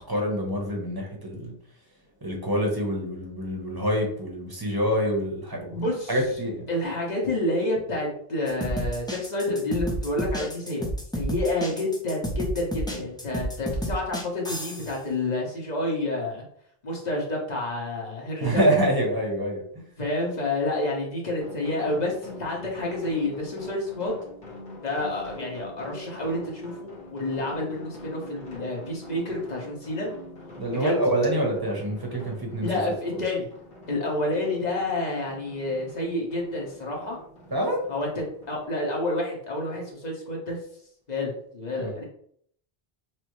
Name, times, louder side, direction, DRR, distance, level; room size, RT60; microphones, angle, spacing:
voice 1, 0.1-1.5 2.2-6.7 13.0-13.1 18.4-19.8 30.6-32.7 37.5-37.8 41.8-42.0, equal, 25° right, 0 dB, 1.0 m, -26 dB
voice 2, 5.7-6.2 6.7-10.9 11.1-16.4 16.8-18.6 20.0-24.1 24.8-30.1 30.8-31.0 32.6-33.5 33.9-37.2 37.9-38.1 38.5-40.6 41.1-42.0, left 2 dB, 45° left, -1 dB, 1.2 m, -29 dB
sound 1, 8.5-14.9, right 1 dB, 5° left, 0.5 m, -31 dB
sound 2, 21.4-38.7, left 1 dB, 65° left, 1.5 m, -44 dB
6.0 x 2.0 x 3.1 m, 0.64 s
omnidirectional pair, 1.0 m